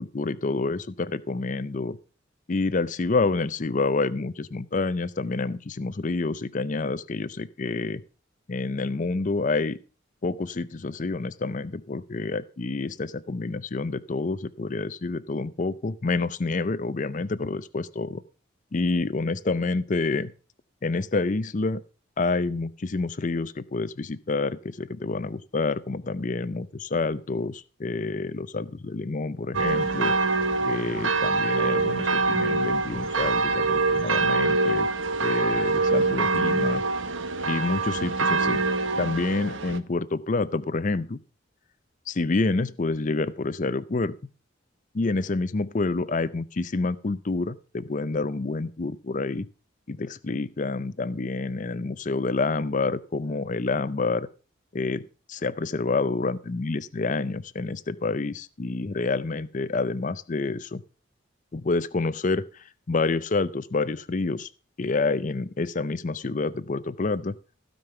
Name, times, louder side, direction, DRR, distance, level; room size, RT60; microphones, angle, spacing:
voice 1, 0.0-2.0 2.5-8.0 8.5-9.8 10.2-18.2 18.7-20.3 20.8-21.8 22.2-30.1 30.6-34.9 35.2-36.8 37.5-38.6 39.0-41.2 42.1-44.1 44.9-49.5 49.9-54.3 54.7-55.0 55.3-60.8 61.5-64.5 64.8-67.3, left 3 dB, 40° left, 15 dB, 0.5 m, -28 dB
sound 1, 29.5-39.8, right 3 dB, 70° right, 1.1 m, -24 dB
16.0 x 5.4 x 6.8 m, 0.37 s
head